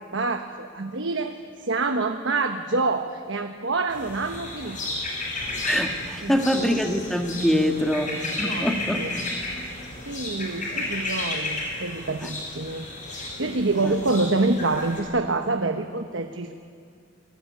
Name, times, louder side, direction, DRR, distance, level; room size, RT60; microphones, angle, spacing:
voice 1, 0.1-4.8 5.6-5.7 6.2-6.7 7.5-8.0 8.4-9.1 10.1-16.5, right 3 dB, 65° right, 5 dB, 1.2 m, -27 dB
sound 1, 3.9-15.0, left 2 dB, 40° left, 6.7 m, -33 dB
voice 2, 5.6-8.1 8.4-9.0 13.8-13.9, equal, ahead, 4 dB, 1.6 m, -24 dB
27.5 x 19.0 x 9.5 m, 2.3 s
head